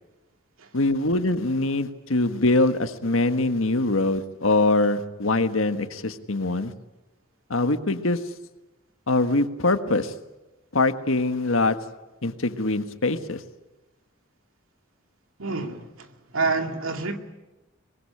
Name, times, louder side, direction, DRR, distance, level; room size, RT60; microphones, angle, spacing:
voice 1, 0.7-6.7 7.5-8.2 9.1-10.1 10.7-11.8 12.2-13.4, left 2 dB, 75° left, 1.5 m, -23 dB
voice 2, 15.4-17.2, right 3 dB, 80° right, 2.3 m, -28 dB
24.5 x 21.0 x 9.9 m
head